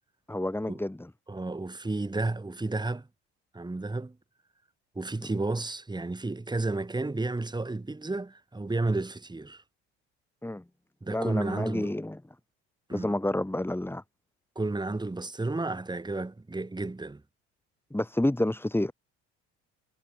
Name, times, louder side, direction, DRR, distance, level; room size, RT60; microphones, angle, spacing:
voice 1, 0.3-1.1 5.2-5.3 10.4-10.6 11.1-12.2 12.9-14.0 17.9-18.9, left 1 dB, 5° left, 7.8 m, -29 dB
voice 2, 1.3-3.1 3.5-4.2 5.0-9.6 11.0-11.9 12.9-13.1 14.6-17.2, right 2 dB, 10° right, 4.2 m, -32 dB
hypercardioid pair, 80°, 33 cm